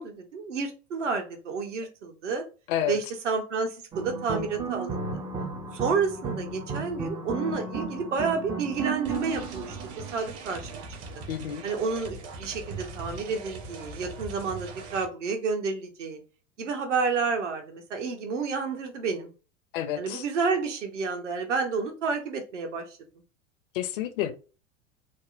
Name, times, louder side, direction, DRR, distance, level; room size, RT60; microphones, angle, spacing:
voice 1, 0.0-2.4 2.9-5.2 5.7-10.8 11.6-16.2 16.6-19.3 20.0-23.0, right 5 dB, 70° right, 0.9 m, -30 dB
sound 1, 3.9-10.5, right 4 dB, 10° right, 0.3 m, -34 dB
sound 2, 9.1-15.1, right 3 dB, 35° right, 0.7 m, -41 dB
voice 2, 11.3-11.7 19.7-20.2 23.7-24.3, left 11 dB, 45° left, 0.5 m, -29 dB
3.5 x 2.0 x 2.5 m
figure-of-eight pair, 85°, 38 cm